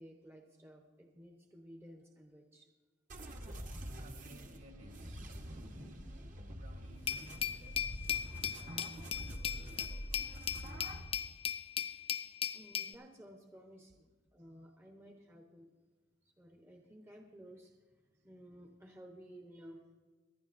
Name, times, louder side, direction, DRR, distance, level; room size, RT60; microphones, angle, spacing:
voice 1, 0.0-2.7 3.2-3.3 12.5-15.7 16.2-19.8, equal, 15° right, 0.9 m, -55 dB
sound 1, 3.1-11.1, equal, 45° right, 1.1 m, -46 dB
voice 2, 3.5-12.6, equal, 60° right, 2.6 m, -62 dB
Glass, 7.1-12.9, left 9 dB, 30° left, 0.4 m, -38 dB
24.0 x 11.5 x 2.6 m
head